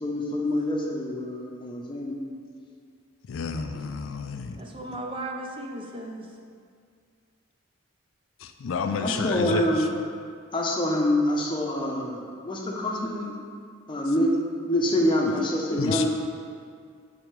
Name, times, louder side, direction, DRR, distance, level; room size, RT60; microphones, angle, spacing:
voice 1, 0.0-2.2 3.7-3.8 9.0-9.8 10.5-13.4 13.9-14.3 14.6-16.1, left 1 dB, 25° left, -1 dB, 0.7 m, -26 dB
voice 2, 3.3-4.6 8.4-9.9 15.8-16.1, left 5 dB, 75° left, 7 dB, 0.4 m, -30 dB
voice 3, 4.6-6.3 15.4-15.8, right 1 dB, 25° right, 1 dB, 0.5 m, -36 dB
6.5 x 3.5 x 4.7 m, 2.1 s
head